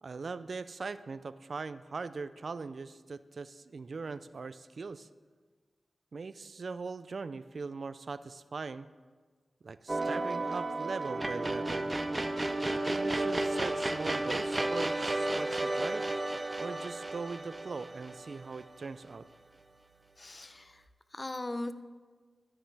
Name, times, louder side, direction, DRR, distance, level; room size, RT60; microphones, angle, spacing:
voice 1, 0.0-5.1 6.1-8.9 9.6-11.9 12.7-16.0 16.6-19.3, right 4 dB, 65° right, 14 dB, 0.3 m, -40 dB
sound 1, 9.9-19.1, right 2 dB, 30° right, 0.7 m, -33 dB
voice 2, 20.2-20.8 21.1-21.7, left 2 dB, 40° left, 10 dB, 0.6 m, -39 dB
12.5 x 9.8 x 3.3 m, 1.4 s
cardioid pair, 55°, 0 cm